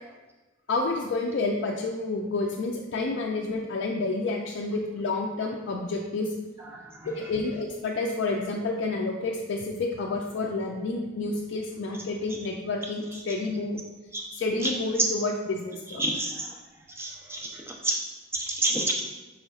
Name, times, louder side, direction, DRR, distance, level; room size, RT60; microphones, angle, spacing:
voice 1, 0.7-6.3 7.0-13.8 14.3-16.0, left 3 dB, 65° left, -1 dB, 0.4 m, -29 dB
voice 2, 16.0-16.5 17.0-18.0 18.3-18.9, right 2 dB, 15° right, -1 dB, 0.5 m, -29 dB
5.5 x 4.1 x 2.3 m, 1.2 s
head